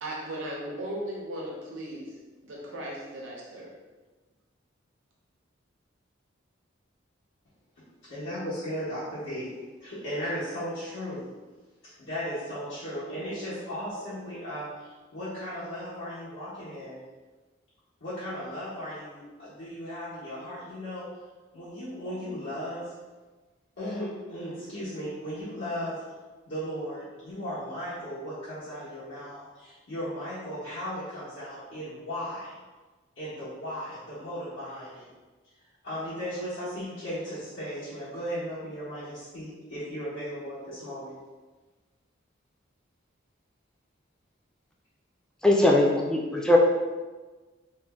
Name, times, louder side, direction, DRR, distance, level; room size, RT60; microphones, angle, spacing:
voice 1, 0.0-3.8, right 1 dB, 75° right, -3 dB, 0.6 m, -37 dB
voice 2, 8.0-9.5 9.8-11.2 12.0-17.0 18.0-21.1 21.5-22.9 23.8-26.0 26.5-32.6 33.2-35.1 35.8-41.2, equal, 75° left, -12 dB, 1.0 m, -36 dB
voice 3, 45.4-46.6, left 1 dB, 5° left, -2 dB, 0.3 m, -20 dB
2.6 x 2.1 x 3.3 m, 1.3 s
head